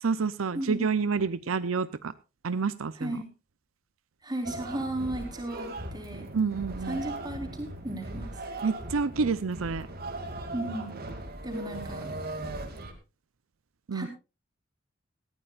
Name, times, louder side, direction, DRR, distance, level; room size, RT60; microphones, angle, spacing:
voice 1, 0.0-2.1 2.4-3.2 6.3-7.0 8.6-9.9 13.9-14.1, right 5 dB, 90° right, 15 dB, 0.6 m, -28 dB
voice 2, 3.0-3.3 4.2-6.3 6.8-8.4 10.5-10.9 11.4-12.1 13.9-14.1, right 1 dB, 20° right, 3 dB, 4.0 m, -35 dB
sound 1, 4.4-12.9, right 2 dB, 50° right, 2.5 m, -38 dB
19.0 x 14.5 x 2.5 m, 0.29 s
head